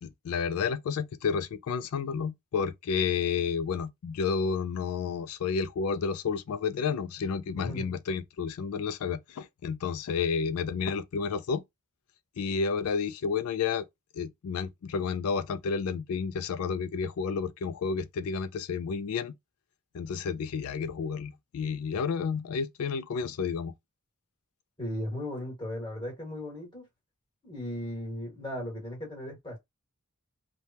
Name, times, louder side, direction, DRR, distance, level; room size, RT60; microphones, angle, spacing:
voice 1, 0.0-11.6 12.4-13.9 14.1-19.3 19.9-23.7, left 5 dB, 80° left, 0.3 m, -31 dB
voice 2, 7.6-7.9 24.8-26.9 27.4-29.6, left 1 dB, 20° left, 1.5 m, -36 dB
3.3 x 2.2 x 2.7 m
head